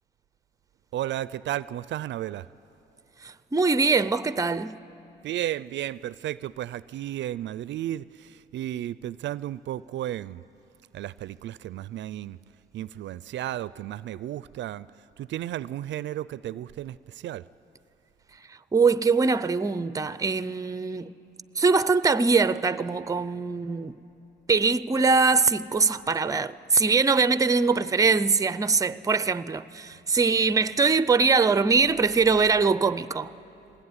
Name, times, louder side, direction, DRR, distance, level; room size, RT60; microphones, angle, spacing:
voice 1, 0.9-2.5 5.2-10.4 10.9-12.4 12.7-14.9 15.2-17.4, right 13 dB, 65° right, 0.4 m, -33 dB
voice 2, 3.5-4.8 18.7-21.1 21.6-23.9 24.5-33.3, right 4 dB, 15° right, 0.5 m, -22 dB
20.5 x 16.5 x 9.7 m
cardioid pair, 90°, 20 cm